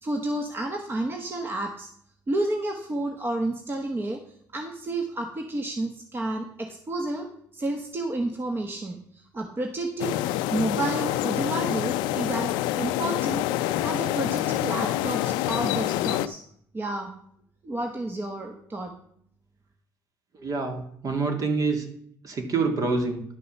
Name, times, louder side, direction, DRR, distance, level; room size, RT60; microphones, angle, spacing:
voice 1, 0.0-1.9 2.3-4.2 4.5-7.3 7.5-13.4 13.8-16.4 16.7-17.1 17.6-18.9, right 2 dB, 30° right, 4 dB, 1.3 m, -30 dB
sound 1, 10.0-16.3, left 14 dB, 85° left, 0.4 m, -27 dB
voice 2, 20.4-21.9 22.2-23.2, right 4 dB, 50° right, 5 dB, 2.2 m, -26 dB
11.0 x 5.5 x 6.6 m, 0.66 s
supercardioid pair, 75°, 8 cm